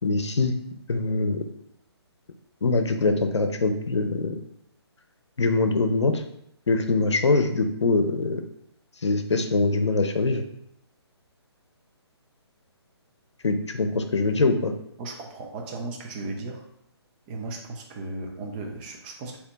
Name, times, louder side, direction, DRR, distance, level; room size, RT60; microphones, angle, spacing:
voice 1, 0.0-0.5 0.9-1.4 2.6-4.4 5.4-6.2 6.7-8.4 9.0-10.4 13.4-14.7, left 3 dB, 85° left, 7 dB, 0.7 m, -23 dB
voice 2, 15.0-16.7 17.3-19.4, right 2 dB, 20° right, 1 dB, 0.7 m, -36 dB
4.2 x 2.9 x 4.0 m, 0.76 s
hypercardioid pair, 145°, 14 cm